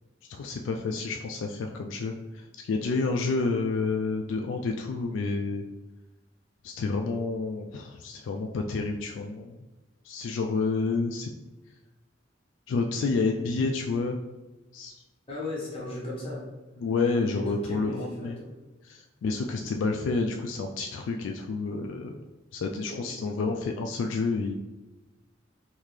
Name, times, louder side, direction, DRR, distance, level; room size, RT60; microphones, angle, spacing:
voice 1, 0.3-5.6 6.6-9.6 10.0-11.3 12.7-14.2 14.7-14.9 16.8-18.4 18.8-22.1 22.5-24.5, left 4 dB, 75° left, 3 dB, 0.3 m, -29 dB
voice 2, 15.3-16.4 17.1-18.5 22.9-23.2, left 1 dB, 30° left, -5 dB, 1.2 m, -36 dB
3.6 x 2.8 x 3.1 m, 1.1 s
head